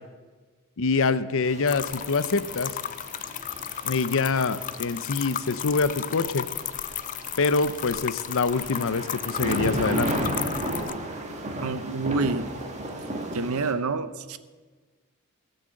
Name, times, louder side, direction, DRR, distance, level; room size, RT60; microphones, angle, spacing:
voice 1, 0.8-2.7 3.8-6.5 7.4-10.1, left 4 dB, 65° left, 14 dB, 0.7 m, -25 dB
sound 1, 1.4-13.7, right 1 dB, 30° right, 1.8 m, -34 dB
sound 2, 1.7-10.9, left 11 dB, 35° left, 0.3 m, -34 dB
voice 2, 11.6-12.5 13.3-14.4, right 3 dB, 70° right, 12 dB, 0.8 m, -28 dB
18.0 x 6.7 x 7.7 m, 1.4 s
head